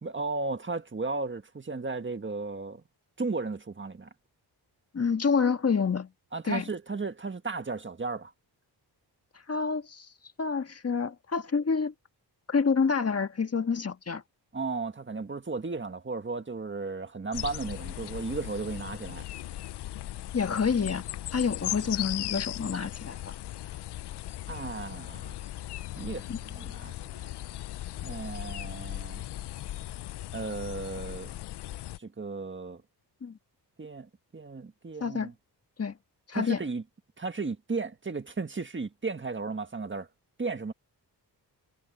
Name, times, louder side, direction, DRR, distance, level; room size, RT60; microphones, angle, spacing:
voice 1, 0.0-2.8 3.2-4.1 6.3-8.3 14.5-19.3 24.5-25.4 26.0-26.9 28.0-29.2 30.3-31.3 32.0-32.8 33.8-35.3 36.3-36.8 37.2-40.1 40.4-40.7, right 4 dB, 30° right, 1.7 m, -35 dB
voice 2, 4.9-6.1 6.4-6.7 9.5-10.1 10.4-11.9 12.5-14.2 20.3-23.2 26.3-26.4 33.2-33.4 35.0-35.3 35.8-36.0 36.3-36.6, left 5 dB, 35° left, 1.5 m, -28 dB
sound 1, 17.3-32.0, left 13 dB, 75° left, 0.6 m, -38 dB
wide cardioid pair, 100°, 41 cm